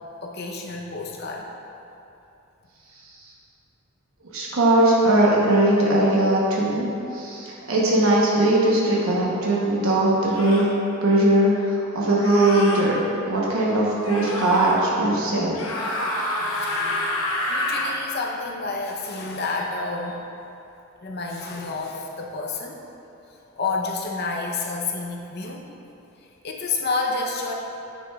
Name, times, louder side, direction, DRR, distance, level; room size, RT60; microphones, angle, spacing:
voice 1, 0.2-1.5 16.4-20.2 21.0-22.8 23.6-25.6 26.4-27.5, left 3 dB, 50° left, 0 dB, 0.7 m, -29 dB
voice 2, 4.3-10.7 11.0-13.0 13.3-15.6, right 1 dB, 75° right, -5 dB, 1.0 m, -20 dB
sound 1, 8.9-9.1 10.3-10.7 12.2-12.8 14.0-14.8 15.5-17.9, left 1 dB, 80° left, 0.9 m, -28 dB
9.7 x 5.9 x 2.4 m, 2.8 s
head